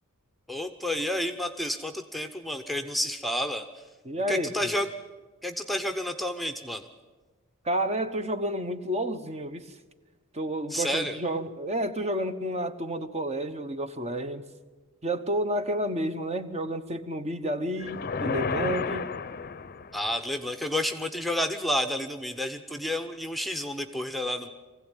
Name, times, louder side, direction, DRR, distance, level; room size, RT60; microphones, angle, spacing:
voice 1, 0.5-3.6 4.3-4.9 5.4-6.8 10.7-11.2 19.9-24.5, left 1 dB, ahead, 7 dB, 0.8 m, -30 dB
voice 2, 4.0-4.7 7.6-9.6 10.3-14.5 15.0-19.0, right 1 dB, 30° right, 9 dB, 1.0 m, -30 dB
sound 1, 17.8-20.1, left 5 dB, 45° left, 0.7 m, -32 dB
23.0 x 16.0 x 9.1 m, 1.3 s
head